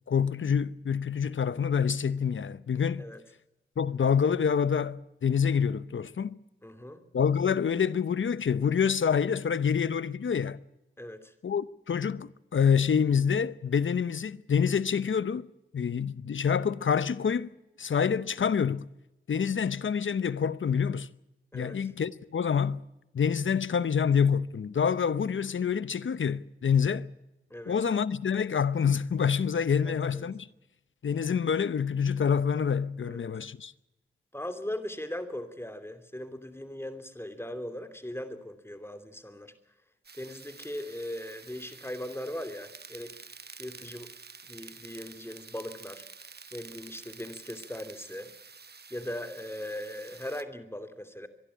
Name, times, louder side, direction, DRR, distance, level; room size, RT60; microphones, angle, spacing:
voice 1, 0.1-3.1 3.8-6.3 7.1-10.6 11.4-15.5 15.7-17.5 17.8-18.9 19.3-21.1 21.5-22.8 23.1-27.1 27.7-30.5 31.0-33.7, left 7 dB, 70° left, 0.8 m, -27 dB
voice 2, 6.6-7.0 11.0-11.3 21.5-21.8 27.5-27.8 29.8-30.2 33.0-33.3 34.3-39.5 40.2-43.2 43.6-44.1 44.5-46.0 46.5-48.3 48.9-51.3, left 1 dB, 10° left, 2.9 m, -39 dB
sound 1, 40.0-50.4, right 5 dB, 50° right, 1.1 m, -49 dB
24.5 x 11.5 x 9.9 m
cardioid pair, 45°, 21 cm